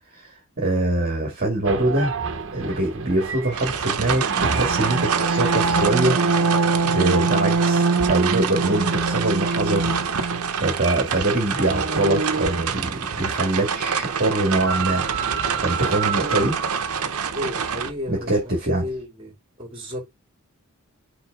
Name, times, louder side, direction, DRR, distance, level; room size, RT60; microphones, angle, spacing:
voice 1, 0.1-2.1 2.5-9.9 10.6-15.1 15.6-16.6 18.1-18.8, right 2 dB, 45° right, 1.9 m, -24 dB
sound 1, 1.7-13.5 14.3-17.0, right 4 dB, 60° right, 1.2 m, -25 dB
sound 2, 3.5-17.9, right 6 dB, 85° right, 0.9 m, -27 dB
voice 2, 17.3-20.1, left 1 dB, 25° right, 3.2 m, -33 dB
6.2 x 4.3 x 3.6 m
head